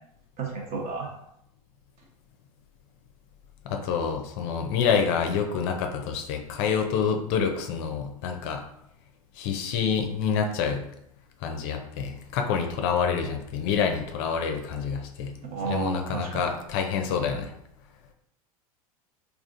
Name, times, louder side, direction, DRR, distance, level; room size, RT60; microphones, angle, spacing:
voice 1, 0.4-1.1 15.5-16.4, right 4 dB, 40° right, -1 dB, 1.0 m, -31 dB
voice 2, 3.6-8.6 9.4-10.8 11.4-15.3 15.7-17.5, left 6 dB, 50° left, 4 dB, 0.5 m, -27 dB
3.4 x 2.4 x 2.5 m, 0.76 s
hypercardioid pair, 85°, 18 cm